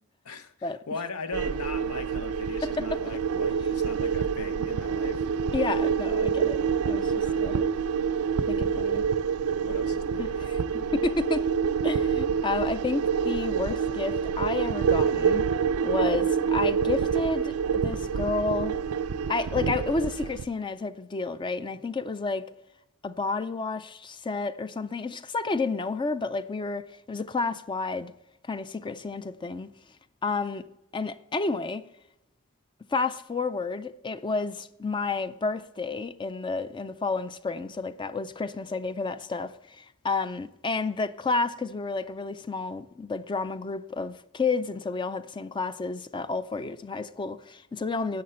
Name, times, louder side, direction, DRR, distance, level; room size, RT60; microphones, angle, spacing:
voice 1, 0.2-5.3 7.2-7.6 9.6-10.3, left 4 dB, 80° left, 0.8 m, -39 dB
sound 1, 1.3-20.4, right 6 dB, 80° right, 0.4 m, -27 dB
voice 2, 2.6-3.0 5.5-6.6 6.9-7.6 8.5-9.0 10.2-11.5 11.8-15.4 15.8-18.7 19.3-22.4 23.0-28.1 28.5-29.7 30.2-30.6 30.9-31.8 32.9-48.2, left 3 dB, 20° left, 0.4 m, -31 dB
10.5 x 7.6 x 4.3 m
head